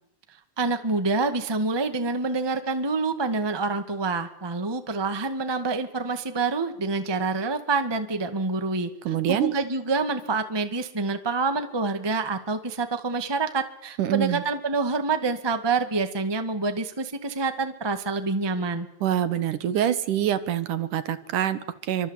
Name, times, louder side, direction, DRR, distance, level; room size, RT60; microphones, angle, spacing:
voice 1, 0.6-8.9 9.3-18.9, right 3 dB, 10° right, 7 dB, 1.2 m, -27 dB
voice 2, 9.0-9.5 14.0-14.4 19.0-22.1, right 10 dB, 70° right, 12 dB, 2.8 m, -25 dB
27.0 x 24.5 x 8.3 m, 0.75 s
omnidirectional pair, 4.0 m